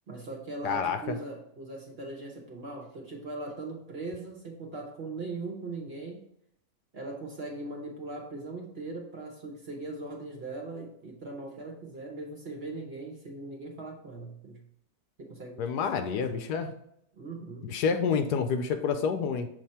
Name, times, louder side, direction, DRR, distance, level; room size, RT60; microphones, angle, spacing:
voice 1, 0.1-6.2 6.9-14.6 15.2-16.4 17.1-17.7, right 2 dB, 45° right, 0 dB, 1.0 m, -40 dB
voice 2, 0.6-1.2 15.6-16.7 17.6-19.5, left 6 dB, 75° left, 8 dB, 1.1 m, -28 dB
6.8 x 3.3 x 4.2 m, 0.75 s
omnidirectional pair, 1.8 m